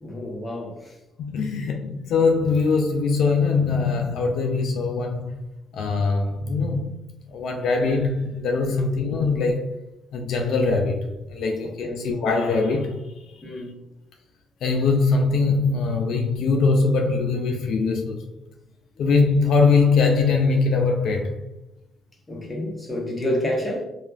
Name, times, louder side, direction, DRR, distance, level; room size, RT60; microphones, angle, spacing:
voice 1, 0.0-0.9 8.7-8.9 11.8-12.1 13.4-13.7 22.3-23.8, left 1 dB, 20° left, 0.9 m, -29 dB
voice 2, 1.2-5.5 5.7-6.9 7.3-9.8 10.1-13.5 14.6-18.3 19.0-21.4, left 4 dB, 75° left, 0.3 m, -22 dB
2.9 x 2.3 x 2.3 m
cardioid pair, 90°, 0 cm